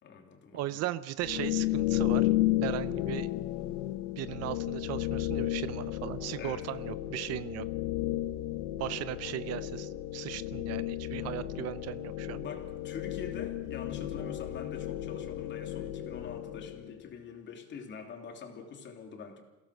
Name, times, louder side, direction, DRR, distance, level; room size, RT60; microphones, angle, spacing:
voice 1, 0.0-0.9 6.4-6.7 12.3-19.4, left 6 dB, 35° left, 4 dB, 3.1 m, -45 dB
voice 2, 0.5-2.3 2.6-3.3 4.2-7.7 8.8-12.4, right 14 dB, 50° right, 15 dB, 0.7 m, -37 dB
sound 1, 1.2-17.0, left 15 dB, 85° left, 1.4 m, -33 dB
28.0 x 17.0 x 6.5 m, 1.1 s
cardioid pair, 150°, 33 cm